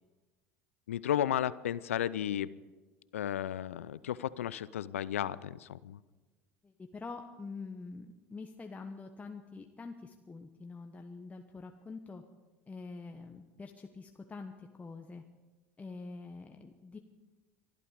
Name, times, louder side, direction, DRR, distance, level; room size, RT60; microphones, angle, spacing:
voice 1, 0.9-2.5 3.1-6.0, left 10 dB, 85° left, 19 dB, 0.5 m, -33 dB
voice 2, 6.6-12.2 12.7-15.2 15.8-17.0, left 4 dB, 20° left, 4 dB, 1.1 m, -46 dB
23.5 x 12.5 x 5.0 m, 1.3 s
hypercardioid pair, 75°, 7 cm